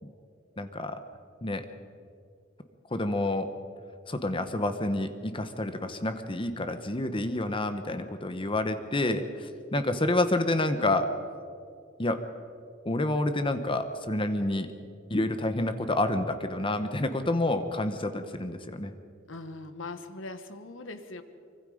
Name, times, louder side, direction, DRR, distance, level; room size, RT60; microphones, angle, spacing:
voice 1, 0.6-1.0 1.4-1.7 2.9-3.5 4.1-11.1 12.0-12.2 12.8-14.7 15.1-18.9, left 2 dB, 25° left, 9 dB, 1.1 m, -28 dB
voice 2, 19.3-21.2, left 2 dB, 75° left, 9 dB, 1.5 m, -41 dB
25.0 x 24.0 x 5.1 m, 2.3 s
head